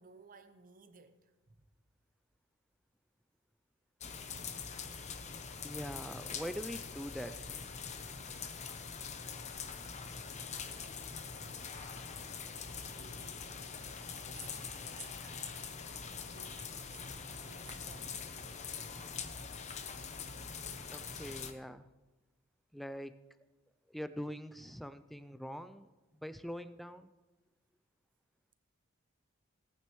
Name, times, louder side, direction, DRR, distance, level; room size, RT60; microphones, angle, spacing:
voice 1, 0.0-1.7 10.5-12.4 12.8-13.6 14.2-15.7 16.0-17.0 17.5-18.6, right 6 dB, 45° right, 0.8 m, -58 dB
sound 1, 4.0-21.5, left 5 dB, 35° left, 0.7 m, -44 dB
voice 2, 5.6-7.6 20.9-21.9 22.7-23.1 23.9-25.9 26.2-27.1, equal, ahead, 0.3 m, -43 dB
18.0 x 9.2 x 3.1 m
head